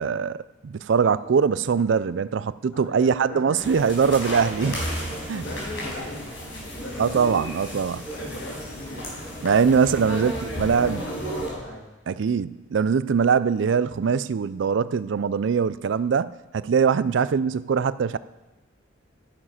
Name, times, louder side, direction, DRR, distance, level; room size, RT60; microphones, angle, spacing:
voice 1, 0.0-4.8 5.3-5.4 7.0-8.0 9.4-11.0 12.1-18.2, right 6 dB, 70° right, 0.4 m, -22 dB
voice 2, 2.7-3.7 4.3-7.2 7.9-9.1 9.8-11.8, left 1 dB, 70° left, 2.6 m, -39 dB
sound 1, 3.6-11.5, equal, 90° left, 5.1 m, -33 dB
12.0 x 9.8 x 5.7 m
head